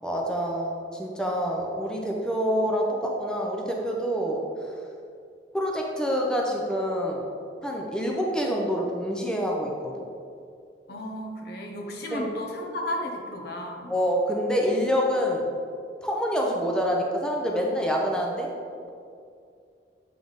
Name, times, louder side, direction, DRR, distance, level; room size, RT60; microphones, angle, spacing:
voice 1, 0.0-4.4 5.5-7.2 7.6-10.0 12.1-12.3 13.9-15.4 16.0-18.5, equal, 5° left, -1 dB, 0.5 m, -26 dB
voice 2, 10.9-13.9, left 1 dB, 65° left, 1 dB, 0.8 m, -34 dB
7.6 x 3.3 x 3.9 m, 2.4 s
head